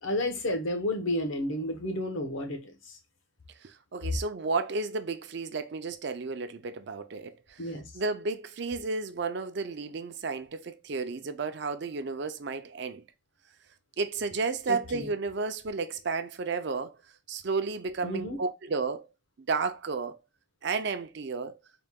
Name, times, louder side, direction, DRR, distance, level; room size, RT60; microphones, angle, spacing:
voice 1, 0.0-3.0 7.6-7.9 14.7-15.1 18.0-18.4, left 1 dB, 85° left, 1.0 m, -32 dB
voice 2, 3.6-7.6 7.9-13.0 14.0-17.0 17.3-19.1 19.4-20.2 20.6-21.6, right 4 dB, 60° right, 0.5 m, -32 dB
3.8 x 2.3 x 3.5 m
head